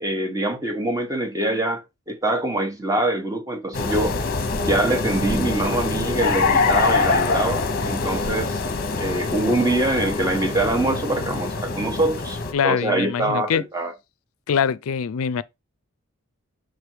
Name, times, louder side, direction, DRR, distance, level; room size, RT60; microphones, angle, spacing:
voice 1, 0.0-4.2 4.6-8.6 9.0-12.4 12.6-13.9, right 1 dB, 15° right, 1.1 m, -24 dB
sound 1, 3.7-12.5, left 4 dB, 45° left, 0.9 m, -24 dB
voice 2, 12.5-13.6 14.5-15.4, left 7 dB, 70° left, 0.4 m, -23 dB
6.3 x 3.4 x 4.6 m
head